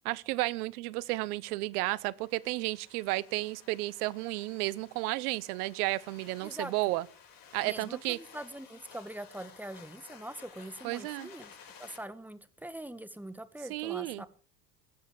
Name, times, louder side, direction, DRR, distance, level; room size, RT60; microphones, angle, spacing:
voice 1, 0.0-7.0 7.5-8.2 10.8-11.3 13.7-14.2, right 20 dB, 80° right, 1.0 m, -32 dB
sound 1, 1.5-12.0, left 7 dB, 50° left, 6.1 m, -55 dB
voice 2, 6.4-6.7 7.6-11.5 11.8-14.3, right 1 dB, 5° right, 1.7 m, -43 dB
19.5 x 8.1 x 6.7 m
hypercardioid pair, 85°, 45 cm